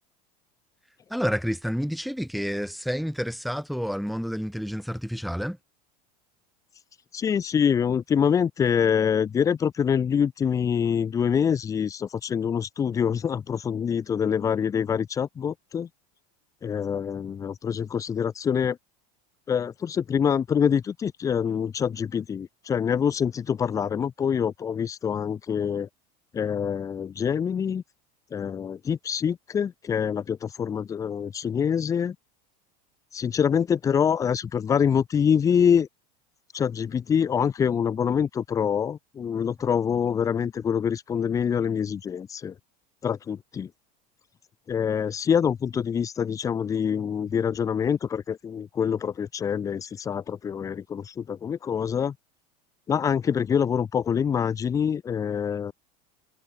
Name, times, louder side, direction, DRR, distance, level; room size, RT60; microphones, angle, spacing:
voice 1, 1.1-5.6, equal, ahead, 3.5 m, -29 dB
voice 2, 7.1-15.9 16.6-18.8 19.5-25.9 26.3-27.8 28.3-32.2 33.1-35.9 36.5-42.6 43.0-43.7 44.7-52.2 52.9-55.7, left 7 dB, 15° left, 0.5 m, -25 dB
supercardioid pair, 150°, 20 cm